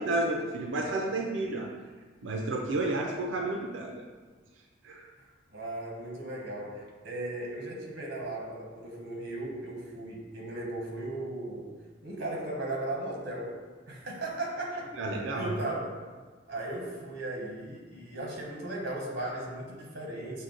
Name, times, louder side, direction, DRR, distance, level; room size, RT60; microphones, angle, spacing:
voice 1, 0.0-1.7 2.2-4.0 4.8-5.1 15.0-15.5, right 2 dB, 75° right, 0 dB, 0.4 m, -31 dB
voice 2, 5.5-11.7 12.0-13.6 13.9-14.9 15.3-15.9 16.5-20.4, right 2 dB, 50° right, -2 dB, 0.9 m, -36 dB
6.4 x 2.2 x 3.8 m, 1.4 s
head